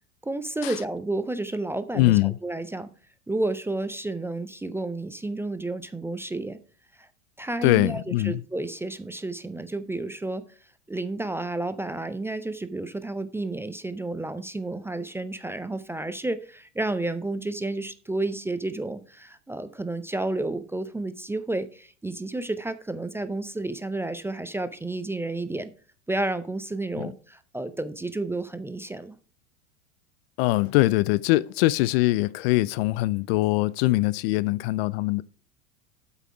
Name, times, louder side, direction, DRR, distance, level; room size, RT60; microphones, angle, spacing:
voice 1, 0.2-2.9 3.3-6.6 7.0-7.1 7.4-10.4 10.9-25.7 26.1-29.2, right 2 dB, 5° right, 0.4 m, -31 dB
voice 2, 1.9-2.4 7.6-8.4 27.0-27.1 30.4-35.2, left 18 dB, 50° left, 0.4 m, -22 dB
8.0 x 5.7 x 4.6 m
hypercardioid pair, 85°, 41 cm